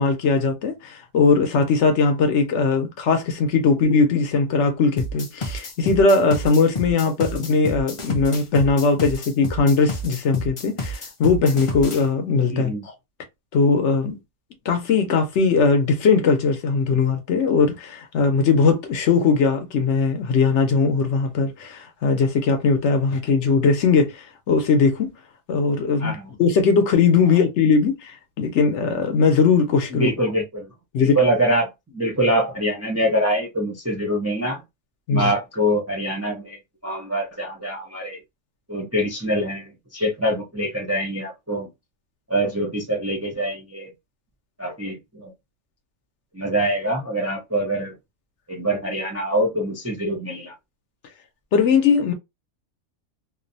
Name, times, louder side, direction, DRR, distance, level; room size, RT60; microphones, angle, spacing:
voice 1, 0.0-12.9 13.5-14.2 14.6-25.1 25.5-30.1 30.9-31.2 35.1-35.3 51.5-52.1, left 4 dB, 70° left, 0.9 m, -19 dB
sound 1, 5.0-12.0, left 1 dB, 55° left, 0.3 m, -30 dB
voice 2, 12.5-12.9 26.0-26.3 29.9-30.7 31.0-34.6 35.1-38.2 38.7-41.7 42.3-43.9 44.6-45.3 46.3-47.9 48.5-50.5, right 1 dB, 20° right, 0.4 m, -24 dB
2.6 x 2.1 x 2.6 m
omnidirectional pair, 1.3 m